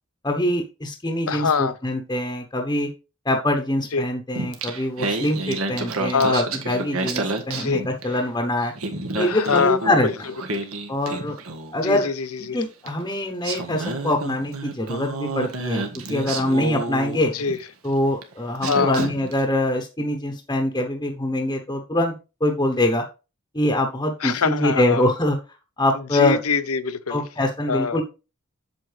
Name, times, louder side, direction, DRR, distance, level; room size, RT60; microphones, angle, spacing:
voice 1, 0.2-2.9 3.2-8.7 9.2-10.1 10.9-11.4 11.7-12.1 12.4-17.3 17.8-22.1 22.4-23.0 23.5-25.4 25.8-26.4 27.1-28.0, left 1 dB, 20° left, 1.0 m, -24 dB
voice 2, 1.3-1.7 3.9-4.0 6.1-6.4 7.6-7.8 9.2-10.1 10.5-10.6 11.8-12.6 17.2-17.6 18.7-19.1 24.2-25.1 25.9-27.2 27.7-28.0, left 5 dB, 80° left, 0.8 m, -24 dB
Singing, 4.4-8.3 8.6-11.8 12.9-13.0 13.4-17.6 18.2-18.3 18.6-19.4, right 3 dB, 75° right, 1.5 m, -30 dB
8.0 x 7.5 x 3.4 m
head